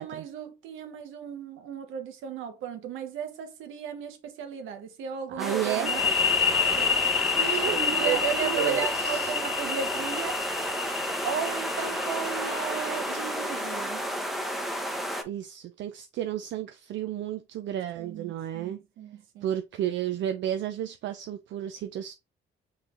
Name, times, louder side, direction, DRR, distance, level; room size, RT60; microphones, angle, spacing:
voice 1, 0.0-6.0 7.6-10.5 11.2-14.0 18.0-19.6, right 7 dB, 90° right, 0.9 m, -35 dB
voice 2, 5.3-5.9 7.3-9.3 15.2-18.8 19.4-22.1, right 11 dB, 70° right, 0.4 m, -32 dB
sound 1, 5.4-15.2, equal, ahead, 0.8 m, -32 dB
sound 2, 5.9-13.3, left 6 dB, 30° left, 1.0 m, -28 dB
5.6 x 3.2 x 2.5 m
cardioid pair, 90°, 20 cm